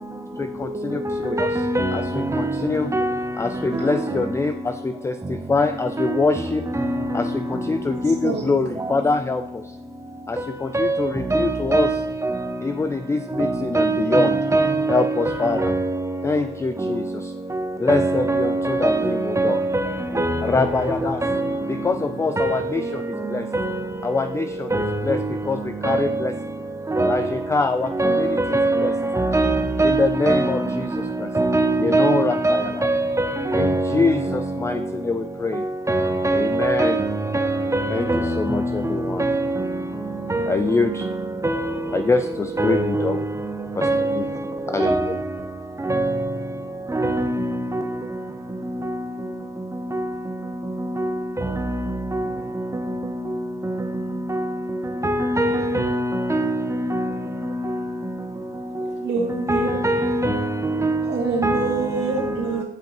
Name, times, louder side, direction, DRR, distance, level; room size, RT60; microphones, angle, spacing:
voice 1, 0.4-1.5 1.9-2.9 3.4-6.6 7.1-9.8 10.3-11.9 12.6-14.4 14.9-15.7 16.2-17.3 17.8-19.6 20.4-21.2 21.7-23.5 24.0-26.3 27.0-28.9 29.8-31.3 31.8-32.9 33.5-35.7 36.3-37.0 37.9-39.3 40.5-41.1 41.9-43.2 43.7-43.9 44.1-44.2 44.7-45.2, left 3 dB, 15° left, 0.3 m, -25 dB
voice 2, 1.1-2.5 2.9-3.2 3.7-3.9 6.0-6.2 6.7-7.0 8.8-8.9 10.4-12.5 13.4-16.2 16.8-16.9 17.5-17.6 17.9-21.6 22.4-22.9 23.5-23.9 24.7-25.3 25.8-26.2 26.9-27.3 27.9-31.0 31.3-34.5 35.5-39.8 40.3-41.1 41.4-41.9 42.6-43.2 43.8-44.3 44.8-45.2 45.8-46.3 46.9-47.8 48.8-48.9 49.9-50.0 51.0-52.3 53.6-53.7 54.3-54.5 55.0-57.1 57.4-57.8 59.5-61.1 61.4-62.4, right 2 dB, 15° right, 0.7 m, -23 dB
voice 3, 3.7-4.2 8.2-8.4 58.8-59.8 61.1-62.6, right 4 dB, 60° right, 2.4 m, -26 dB
10.0 x 5.3 x 3.0 m
cardioid pair, 90°, 20 cm